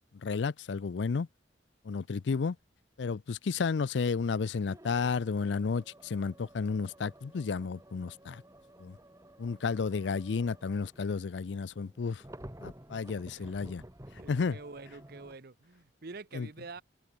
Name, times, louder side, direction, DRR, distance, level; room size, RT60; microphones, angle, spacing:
voice 1, 0.2-1.3 1.9-2.6 3.0-8.4 8.8-9.0 9.4-12.2 12.6-13.8 14.3-14.6 16.3-16.5, left 5 dB, 75° left, 0.5 m, -32 dB
sound 1, 2.2-2.5 4.7-15.4, right 1 dB, 15° right, 2.4 m, -52 dB
voice 2, 14.1-16.8, right 3 dB, 55° right, 0.9 m, -47 dB
open air
head